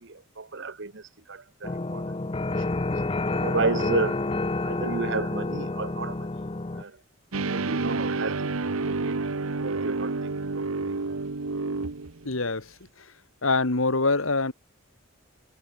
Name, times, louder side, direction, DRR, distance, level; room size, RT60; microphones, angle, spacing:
voice 1, 0.0-2.1 2.6-2.7 3.3-4.2 4.6-6.3 6.7-7.0 7.4-8.5 8.9-9.2 9.6-10.7, right 3 dB, 55° right, 1.1 m, -32 dB
sound 1, 1.6-6.8, left 2 dB, 25° left, 0.6 m, -29 dB
sound 2, 7.3-12.3, right 3 dB, 85° right, 1.1 m, -29 dB
voice 2, 12.3-13.1 13.4-14.5, left 3 dB, 75° left, 2.0 m, -25 dB
head